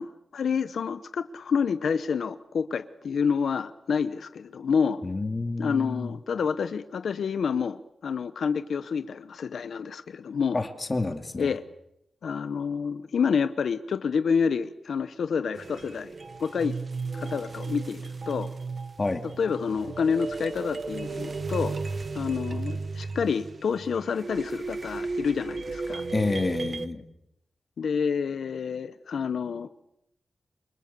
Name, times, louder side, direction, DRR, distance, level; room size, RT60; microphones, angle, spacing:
voice 1, 0.0-5.0 5.6-10.6 11.4-11.6 12.2-16.1 16.4-16.8 17.1-18.5 19.4-21.8 22.1-26.0 27.8-29.7, left 6 dB, 90° left, 11 dB, 0.9 m, -28 dB
voice 2, 5.0-6.2 10.5-11.5 19.0-19.2 26.1-27.0, left 2 dB, 25° left, 6 dB, 2.3 m, -29 dB
sound 1, 15.5-26.9, right 4 dB, 40° right, 1.0 m, -35 dB
28.0 x 24.5 x 6.8 m, 0.79 s
wide cardioid pair, 140°, 0 cm